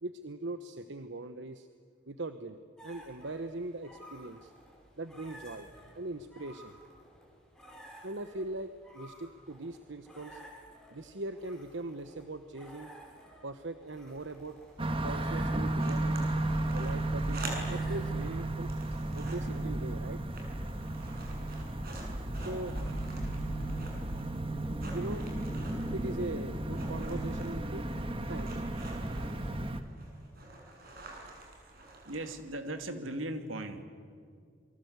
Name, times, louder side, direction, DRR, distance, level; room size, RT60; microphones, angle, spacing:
voice 1, 0.0-1.7 2.1-2.6 2.8-4.5 5.0-5.7 5.9-6.7 8.0-10.4 10.9-12.9 13.4-14.5 15.0-16.3 16.7-18.7 19.1-20.2 22.3-22.7 24.9-25.3 25.9-27.9 28.3-28.6, right 2 dB, 65° right, 10 dB, 1.1 m, -40 dB
sound 1, 2.8-18.8, equal, 5° left, 5.9 m, -54 dB
sound 2, 13.8-32.7, right 2 dB, 50° right, 6.8 m, -48 dB
sound 3, 14.8-29.8, right 1 dB, 25° right, 1.5 m, -34 dB
voice 2, 32.0-33.8, right 1 dB, 85° right, 7 dB, 2.6 m, -38 dB
28.5 x 23.5 x 8.2 m, 2.1 s
head